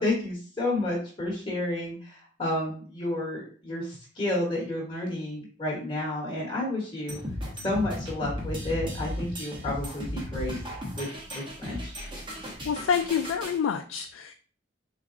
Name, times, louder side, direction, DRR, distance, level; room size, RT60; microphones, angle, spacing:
voice 1, 0.0-7.2 7.6-10.6 10.9-11.9, left 1 dB, 25° left, -3 dB, 1.0 m, -31 dB
sound 1, 7.1-13.6, left 1 dB, 25° right, 0.9 m, -35 dB
voice 2, 12.6-14.3, left 7 dB, 90° left, 6 dB, 0.3 m, -27 dB
4.0 x 3.5 x 2.5 m, 0.41 s
head